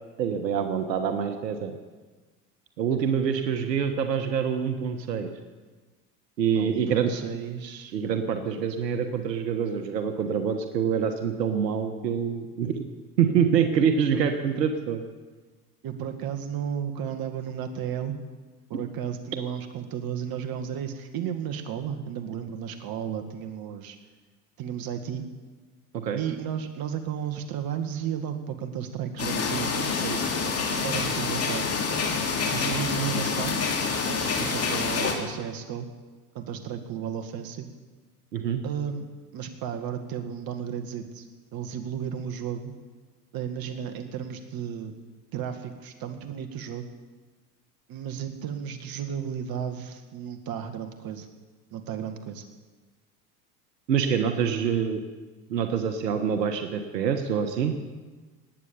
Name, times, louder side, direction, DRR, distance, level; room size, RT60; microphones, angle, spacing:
voice 1, 0.2-1.8 2.8-5.3 6.4-7.1 7.9-12.9 13.2-15.0 25.9-26.2 38.3-38.6 53.9-55.0 55.5-57.7, right 7 dB, 90° right, 7 dB, 1.4 m, -26 dB
voice 2, 6.6-8.0 14.1-14.2 15.8-18.1 18.7-24.0 24.6-25.3 26.2-30.2 30.8-31.7 32.5-33.7 34.1-35.9 36.3-37.7 38.6-41.2 41.5-42.7 43.3-44.9 45.3-46.9 47.9-51.3 51.7-52.4, right 8 dB, 45° right, 6 dB, 2.0 m, -33 dB
sound 1, 29.2-35.1, left 5 dB, 30° left, 2.8 m, -27 dB
19.5 x 8.9 x 7.1 m, 1.3 s
hypercardioid pair, 85°, 48 cm